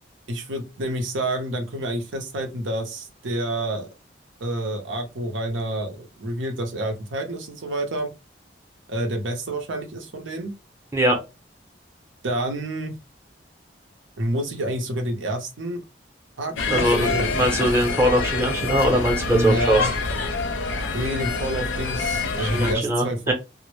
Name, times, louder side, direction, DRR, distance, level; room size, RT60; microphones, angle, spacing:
voice 1, 0.3-3.9 4.4-8.1 8.9-10.5 12.2-13.0 14.2-15.8 16.4-17.4 19.3-19.9 20.9-23.3, right 1 dB, 90° right, 5 dB, 0.6 m, -28 dB
sound 1, 16.6-22.7, left 3 dB, 80° left, 0.5 m, -26 dB
voice 2, 16.7-19.8 22.4-23.3, right 1 dB, 15° right, 2 dB, 0.6 m, -21 dB
2.0 x 2.0 x 3.0 m, 0.26 s
head